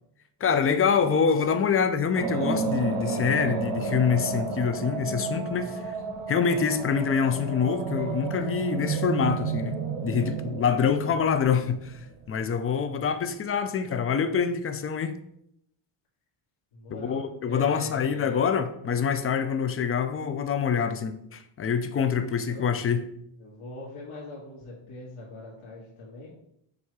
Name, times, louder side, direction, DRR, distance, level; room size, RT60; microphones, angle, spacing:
voice 1, 0.4-5.9 6.3-9.8 10.0-12.0 12.3-15.2 16.9-23.1, left 6 dB, 30° left, 0.5 m, -25 dB
sound 1, 2.1-12.3, right 4 dB, 60° right, 0.9 m, -31 dB
voice 2, 16.7-18.4 22.2-22.7 23.4-26.3, left 2 dB, 75° left, 1.8 m, -42 dB
7.3 x 2.7 x 4.7 m
cardioid pair, 135°, 49 cm